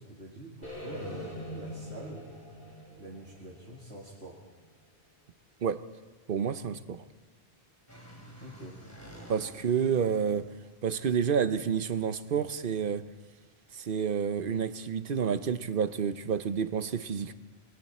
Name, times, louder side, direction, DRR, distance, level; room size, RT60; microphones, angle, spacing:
voice 1, 0.0-2.3 3.0-4.4 8.4-8.8, right 2 dB, 80° right, 2.6 m, -45 dB
sound 1, 0.6-4.7, equal, 60° left, 6.7 m, -43 dB
voice 2, 6.3-7.0 9.3-10.5 10.8-13.0 13.7-17.3, right 7 dB, 55° right, 1.0 m, -29 dB
sound 2, 7.9-10.7, equal, 15° left, 3.8 m, -50 dB
28.5 x 22.5 x 4.3 m
omnidirectional pair, 1.1 m